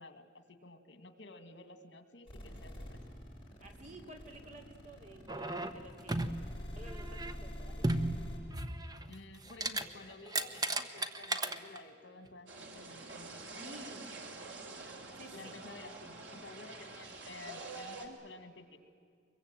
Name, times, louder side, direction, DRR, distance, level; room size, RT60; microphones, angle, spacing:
voice 1, 0.0-3.0 9.1-13.7 15.3-18.8, left 2 dB, 70° left, 9 dB, 2.1 m, -52 dB
sound 1, 2.3-8.4, equal, 25° left, 7.8 m, -45 dB
voice 2, 3.6-6.3 6.7-7.9 13.6-14.1 15.2-15.6, right 1 dB, 40° right, 3 dB, 2.9 m, -52 dB
sound 2, 5.3-6.5 6.9-7.3 7.8-9.1 9.4-9.8 10.1-11.8 12.3-12.4, right 2 dB, 20° right, 1.1 m, -35 dB
sound 3, 12.5-18.1, right 3 dB, 85° right, 3.5 m, -47 dB
24.5 x 22.5 x 9.0 m, 2.1 s
head